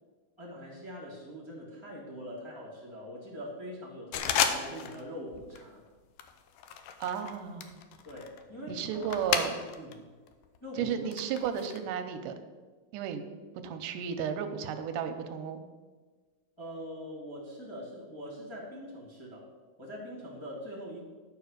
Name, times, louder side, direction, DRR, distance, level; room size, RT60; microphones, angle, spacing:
voice 1, 0.4-5.9 8.0-9.0 9.7-10.1 10.6-10.9 16.6-19.5 19.8-21.0, equal, 10° left, -6 dB, 1.8 m, -43 dB
sound 1, 4.1-5.1 5.3-5.7 6.2-9.9 10.3-11.8, left 8 dB, 85° left, 2.3 m, -33 dB
voice 2, 7.0-7.8 8.7-9.6 10.8-12.3 12.9-13.2 13.6-15.6, right 8 dB, 90° right, 8 dB, 2.3 m, -33 dB
11.0 x 5.3 x 6.5 m, 1.4 s
omnidirectional pair, 3.7 m